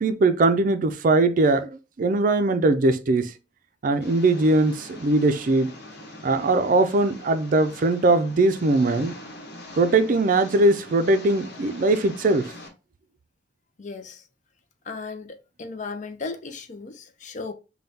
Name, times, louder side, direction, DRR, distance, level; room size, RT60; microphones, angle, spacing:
voice 1, 0.0-3.3 3.8-5.7 6.2-9.2 9.8-12.5, right 2 dB, 45° right, 0.4 m, -20 dB
Engine, 4.0-12.7, left 1 dB, 65° left, 1.1 m, -42 dB
voice 2, 13.8-14.3 14.8-17.5, left 4 dB, 40° left, 0.5 m, -36 dB
5.4 x 2.2 x 2.7 m
head